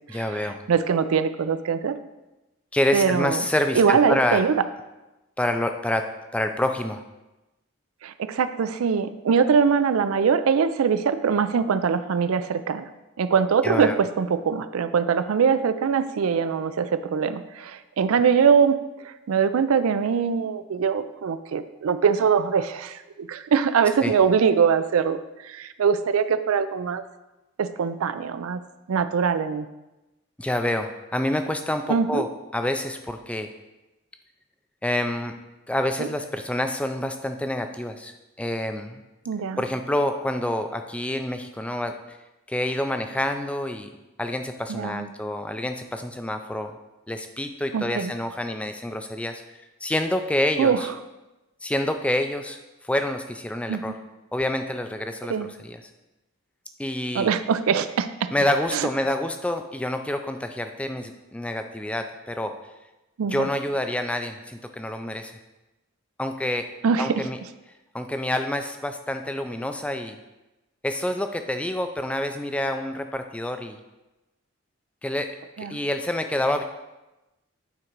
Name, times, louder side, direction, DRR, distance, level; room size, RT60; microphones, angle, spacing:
voice 1, 0.1-0.6 2.7-4.4 5.4-7.0 13.6-14.0 24.0-24.1 30.4-33.5 34.8-35.3 35.7-39.0 39.6-42.2 42.5-43.9 44.2-46.8 47.1-49.4 49.8-50.9 51.6-52.6 52.8-53.9 54.3-55.8 56.8-57.3 58.3-62.5 63.3-65.4 66.2-66.7 67.0-67.4 67.9-70.2 70.8-73.8 75.0-75.3 75.6-76.6, left 1 dB, 5° left, 7 dB, 0.3 m, -27 dB
voice 2, 0.7-2.0 2.9-3.4 3.8-4.5 8.0-12.9 13.2-18.8 19.0-27.0 27.6-28.6 28.9-29.7 31.9-32.2 36.0-36.1 39.3-39.6 44.7-45.1 47.7-48.1 50.6-50.8 53.7-53.8 55.3-55.5 57.1-58.3 58.7-58.9 63.2-63.5 66.8-67.3 75.6-75.8, right 6 dB, 80° right, 12 dB, 0.4 m, -22 dB
9.2 x 3.8 x 4.6 m, 1.0 s
head